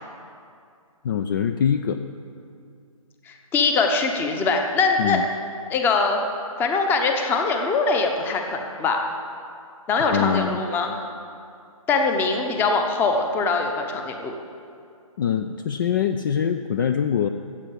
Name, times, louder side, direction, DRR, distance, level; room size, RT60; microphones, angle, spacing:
voice 1, 1.0-2.0 5.0-5.2 10.0-10.6 15.2-17.3, left 8 dB, 35° left, 8 dB, 0.5 m, -23 dB
voice 2, 3.3-5.2 5.7-6.2 6.6-9.1 9.9-10.9 11.9-14.4, left 4 dB, 10° left, 4 dB, 0.9 m, -22 dB
14.0 x 8.2 x 8.4 m, 2.4 s
hypercardioid pair, 150°, 18 cm